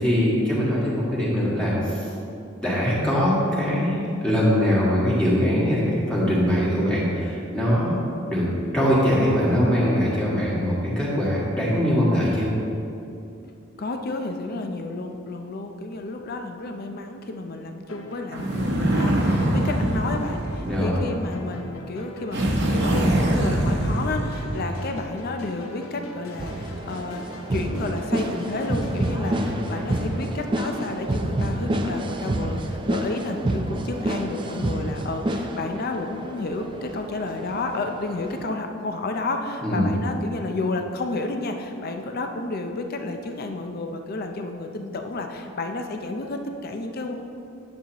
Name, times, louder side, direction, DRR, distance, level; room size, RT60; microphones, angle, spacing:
voice 1, 0.0-2.1 2.6-8.0 8.3-8.5 8.7-12.5 20.6-21.0 29.3-29.6 39.6-39.9, equal, 5° left, -8 dB, 1.8 m, -22 dB
voice 2, 13.8-22.4 22.7-47.2, left 2 dB, 45° left, 5 dB, 0.5 m, -31 dB
sound 1, 17.9-31.4, left 1 dB, 90° left, 0.7 m, -42 dB
sound 2, 18.3-21.4 22.3-25.0, right 1 dB, 55° right, 0.9 m, -24 dB
sound 3, 26.4-38.5, right 1 dB, 25° right, 0.4 m, -29 dB
9.7 x 7.3 x 2.9 m, 2.6 s
head